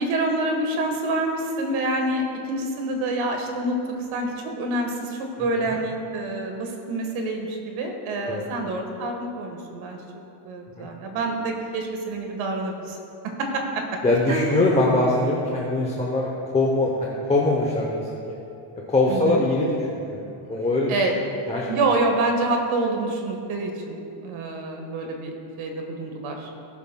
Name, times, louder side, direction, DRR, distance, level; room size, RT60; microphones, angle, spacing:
voice 1, 0.0-3.8 4.1-10.0 10.5-13.0 13.4-13.6 14.3-14.6 19.1-19.4 20.9-21.1 21.7-26.5, right 2 dB, 70° right, 3 dB, 1.6 m, -27 dB
voice 2, 14.0-16.3 16.5-18.4 18.9-20.9 21.5-21.7, left 2 dB, 15° left, -3 dB, 0.8 m, -22 dB
18.5 x 7.2 x 2.3 m, 2.8 s
cardioid pair, 150°, 50 cm